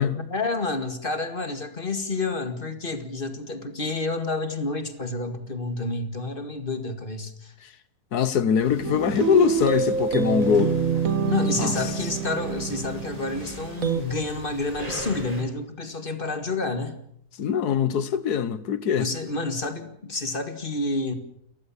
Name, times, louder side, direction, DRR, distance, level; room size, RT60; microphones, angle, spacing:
voice 1, 0.2-7.5 11.3-16.9 19.0-21.1, left 3 dB, 35° left, 2.1 m, -29 dB
voice 2, 8.1-10.8 11.6-11.7 17.4-19.1, left 7 dB, 85° left, 1.7 m, -22 dB
sound 1, 8.6-15.4, equal, 25° right, 4.8 m, -41 dB
sound 2, 8.8-14.0, right 6 dB, 65° right, 1.8 m, -27 dB
29.5 x 15.0 x 7.3 m
omnidirectional pair, 1.6 m